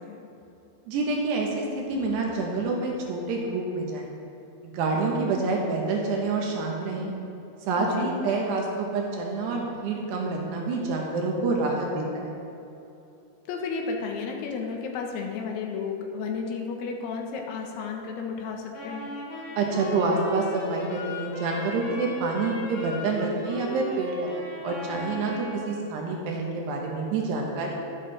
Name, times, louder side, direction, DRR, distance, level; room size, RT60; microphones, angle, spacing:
voice 1, 0.9-4.0 4.6-7.1 7.7-12.4 19.6-27.7, right 3 dB, 75° right, 0 dB, 3.0 m, -27 dB
voice 2, 7.8-8.2 13.5-19.2, left 5 dB, 75° left, 1 dB, 2.8 m, -33 dB
Wind instrument woodwind instrument, 18.7-25.7, equal, 50° left, 4.3 m, -37 dB
12.0 x 11.5 x 3.3 m, 2.8 s
omnidirectional pair, 5.2 m